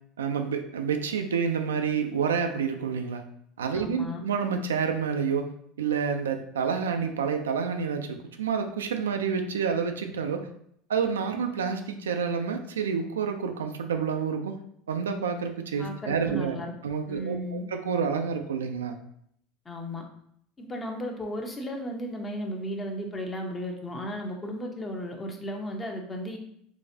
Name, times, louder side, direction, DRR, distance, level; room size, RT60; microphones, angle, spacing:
voice 1, 0.2-3.2 3.6-5.5 5.8-10.5 10.9-14.6 14.9-19.0, right 6 dB, 85° right, 6 dB, 0.3 m, -29 dB
voice 2, 3.7-4.2 15.8-16.7 17.1-17.6 19.7-20.0 20.6-26.4, equal, 25° left, 2 dB, 0.8 m, -35 dB
3.9 x 2.4 x 2.7 m, 0.70 s
hypercardioid pair, 80°, 0 cm